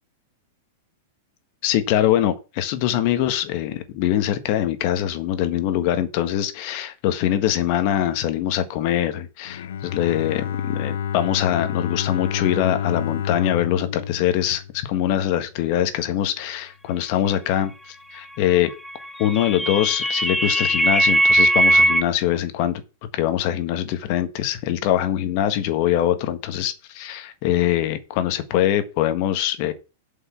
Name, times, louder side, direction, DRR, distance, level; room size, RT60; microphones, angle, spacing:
voice 1, 1.6-18.7 19.2-22.8 23.1-29.7, left 11 dB, 45° left, 1.5 m, -23 dB
Bowed string instrument, 9.5-15.4, left 8 dB, 80° left, 0.5 m, -29 dB
sound 1, 18.9-22.0, right 1 dB, 5° left, 0.7 m, -19 dB
8.1 x 5.5 x 7.1 m
supercardioid pair, 150°, 0 cm